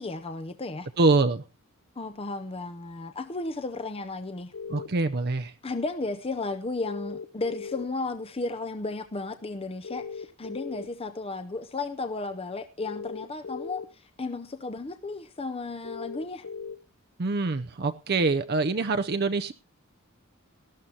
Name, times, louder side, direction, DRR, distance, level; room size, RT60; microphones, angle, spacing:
voice 1, 0.0-0.9 2.0-4.5 5.6-16.4, left 3 dB, 25° left, 9 dB, 0.6 m, -34 dB
voice 2, 1.0-1.4 4.7-5.5 17.2-19.5, right 3 dB, 45° right, 8 dB, 0.6 m, -25 dB
sound 1, 4.5-4.9 6.8-7.8 9.8-10.8 12.8-13.8 15.8-16.8, left 5 dB, 65° left, 1.0 m, -38 dB
18.5 x 12.5 x 2.8 m, 0.29 s
head